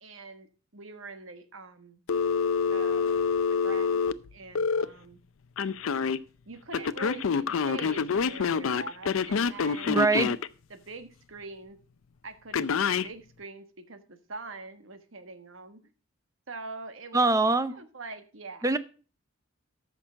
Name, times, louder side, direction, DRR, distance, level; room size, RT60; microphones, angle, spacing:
voice 1, 0.0-0.5 0.7-2.0 2.7-4.0 4.3-5.2 6.5-10.0 10.7-11.8 12.2-15.8 16.5-17.2 17.7-18.7, right 3 dB, 80° right, 1.3 m, -44 dB
Telephone, 2.1-4.8 5.6-6.2 6.7-10.5 12.5-13.1, left 5 dB, 90° left, 0.5 m, -27 dB
voice 2, 9.9-10.4 17.1-17.7 18.6-18.8, right 3 dB, 15° right, 0.6 m, -23 dB
14.0 x 6.1 x 4.4 m
head